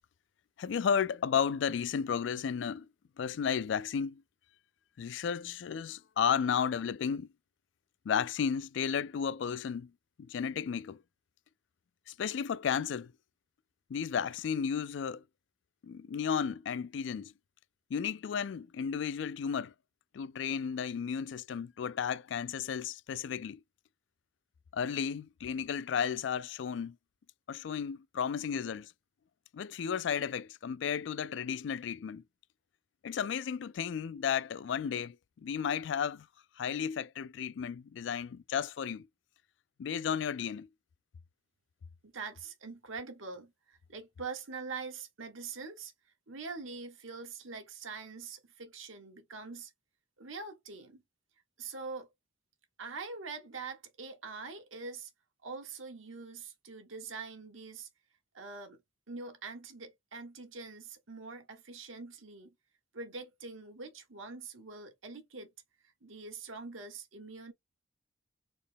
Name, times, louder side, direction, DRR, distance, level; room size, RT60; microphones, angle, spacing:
voice 1, 0.6-2.9 3.2-4.2 5.0-7.3 8.1-9.9 10.2-11.0 12.1-13.1 13.9-15.2 15.8-17.3 17.9-19.7 20.1-23.6 24.7-27.0 27.5-28.9 29.5-32.2 33.0-35.2 35.4-36.3 36.6-39.1 39.8-40.7, left 7 dB, 65° left, 0.3 m, -33 dB
voice 2, 42.0-45.9 46.3-49.7 50.2-51.0 51.6-52.1 52.8-55.1 55.4-57.9 58.3-58.8 59.1-62.5 62.9-65.5 65.8-67.5, right 4 dB, 85° right, 1.4 m, -44 dB
4.3 x 2.8 x 3.6 m
head